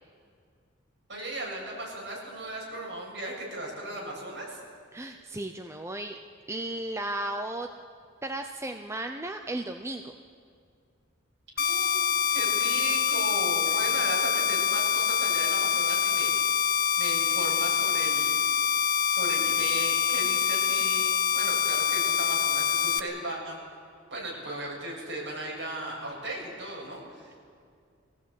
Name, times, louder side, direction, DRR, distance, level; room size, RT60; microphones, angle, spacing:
voice 1, 1.1-4.6 11.6-16.3 17.0-18.4 19.1-23.6 24.1-27.4, right 1 dB, 60° right, -3 dB, 7.3 m, -36 dB
voice 2, 4.9-6.2 6.5-7.7 8.2-10.1 13.7-13.8, right 1 dB, 15° right, 5 dB, 0.7 m, -35 dB
sound 1, 11.6-23.0, left 7 dB, 45° left, 0.7 m, -25 dB
23.0 x 16.5 x 8.4 m, 2.2 s
head